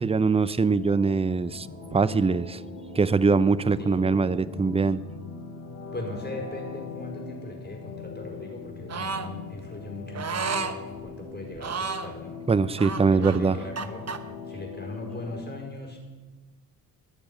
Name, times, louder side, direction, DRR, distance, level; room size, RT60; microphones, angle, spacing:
voice 1, 0.0-1.7 1.9-2.6 3.0-5.0 12.5-13.6, right 4 dB, 15° right, 17 dB, 0.5 m, -22 dB
sound 1, 0.7-15.4, left 4 dB, 85° left, 4.0 m, -41 dB
voice 2, 3.8-4.1 5.9-12.4 13.1-14.0 14.5-16.0, left 2 dB, 25° left, 0 dB, 5.0 m, -39 dB
sound 2, 8.9-9.3 10.1-10.7 11.6-12.1 12.8-14.2, right 5 dB, 35° right, 1.1 m, -31 dB
20.0 x 6.8 x 5.6 m, 1.3 s
supercardioid pair, 50°, 42 cm